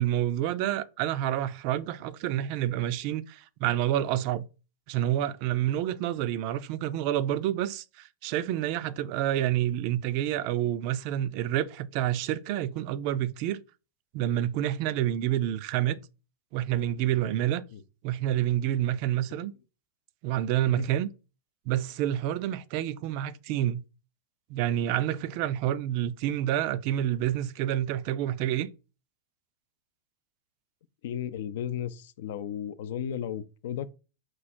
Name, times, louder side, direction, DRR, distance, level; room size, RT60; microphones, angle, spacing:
voice 1, 0.0-4.5 4.9-13.6 14.1-16.0 16.5-17.6 18.0-19.5 20.2-21.1 21.7-23.8 24.5-28.7, right 12 dB, 55° right, 0.4 m, -28 dB
voice 2, 31.0-33.9, left 9 dB, 70° left, 0.4 m, -34 dB
4.6 x 2.4 x 4.3 m
supercardioid pair, 130°, 0 cm